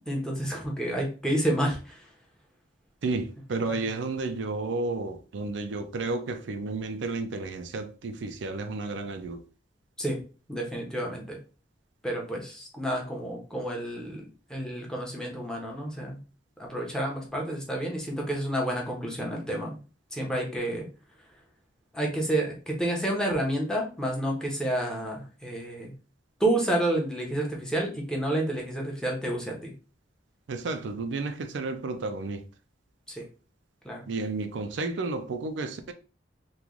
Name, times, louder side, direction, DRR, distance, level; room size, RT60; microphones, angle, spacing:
voice 1, 0.1-2.1 3.6-3.7 10.0-10.2 10.5-11.4 12.0-14.2 14.5-16.2 16.6-19.8 20.1-20.9 21.9-25.9 26.4-29.7 33.1-33.2 33.8-34.1, right 1 dB, 5° left, 0.8 m, -30 dB
voice 2, 3.0-9.4 30.5-32.4 34.1-35.9, right 3 dB, 75° right, 0.4 m, -32 dB
3.1 x 2.2 x 3.7 m
head